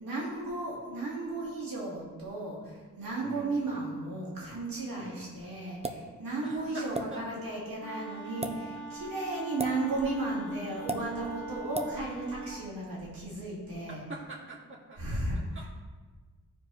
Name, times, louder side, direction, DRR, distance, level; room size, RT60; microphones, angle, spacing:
voice 1, 0.0-14.0 15.0-15.7, right 2 dB, 85° right, -5 dB, 2.3 m, -35 dB
voice 2, 3.2-3.6 4.9-5.3 6.4-7.2 14.1-15.0 15.6-15.7, right 2 dB, 35° right, -4 dB, 2.2 m, -44 dB
sound 1, 5.8-6.1 6.9-7.1 8.3-8.5 9.6-9.8 10.9-11.0 11.7-11.9, right 2 dB, 20° right, 0.7 m, -33 dB
Wind instrument woodwind instrument, 7.8-12.6, right 2 dB, 65° right, 1.0 m, -43 dB
14.0 x 4.8 x 3.1 m, 1.4 s
cardioid pair, 75°, 34 cm